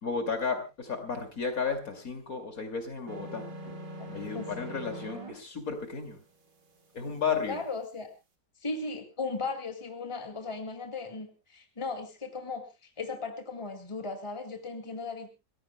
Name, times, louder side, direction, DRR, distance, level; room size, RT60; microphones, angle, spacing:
voice 1, 0.0-3.4 4.1-6.2 6.9-7.6, left 5 dB, 50° left, 6 dB, 2.8 m, -33 dB
sound 1, 3.1-5.3, right 1 dB, 75° right, 3.1 m, -42 dB
voice 2, 7.5-8.1 8.6-15.3, left 3 dB, 15° left, 5 dB, 2.1 m, -37 dB
28.5 x 14.5 x 2.2 m, 0.27 s
omnidirectional pair, 1.9 m